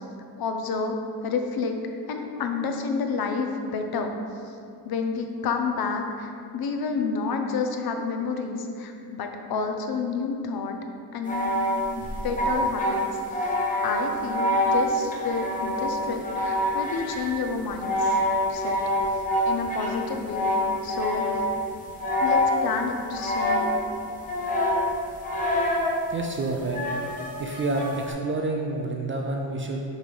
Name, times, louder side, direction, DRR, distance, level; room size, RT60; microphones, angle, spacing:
voice 1, 0.4-1.0 1.2-1.8 2.1-4.2 4.8-10.8 11.1-11.5 12.0-13.0 13.8-18.2 18.5-18.8 19.4-20.5 20.8-21.2 22.2-23.7, left 5 dB, 55° left, 4 dB, 0.6 m, -29 dB
sound 1, 11.2-21.6 22.0-22.8 23.1-23.9 24.3-25.9 26.7-28.1, left 1 dB, 20° left, 0.8 m, -26 dB
voice 2, 26.1-26.8 27.1-29.8, right 2 dB, 30° right, 1 dB, 0.4 m, -29 dB
6.5 x 3.2 x 5.3 m, 2.5 s
cardioid pair, 165°, 44 cm